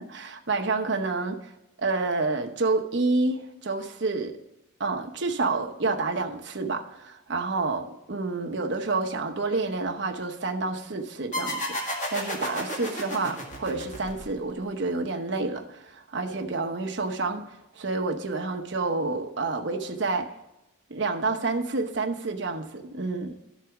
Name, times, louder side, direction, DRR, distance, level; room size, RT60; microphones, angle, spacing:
voice 1, 0.0-1.5 1.8-4.4 4.8-17.4 17.7-20.3 20.9-23.4, right 3 dB, 60° right, 3 dB, 0.8 m, -29 dB
sound 1, 11.3-14.6, left 1 dB, 35° left, 1.8 m, -32 dB
12.5 x 4.1 x 5.8 m, 0.91 s
head